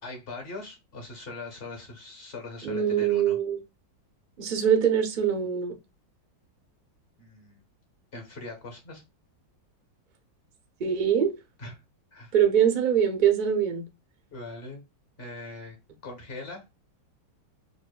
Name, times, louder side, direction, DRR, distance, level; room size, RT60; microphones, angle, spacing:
voice 1, 0.0-3.4 7.2-7.6 8.1-9.0 11.6-11.7 12.1-12.3 14.3-14.8 15.2-15.8 16.0-16.6, left 2 dB, 40° left, 1.0 m, -41 dB
voice 2, 2.6-3.6 4.4-5.7 10.8-11.3 12.3-13.8, right 8 dB, 65° right, 0.5 m, -23 dB
5.2 x 2.3 x 2.2 m
omnidirectional pair, 2.0 m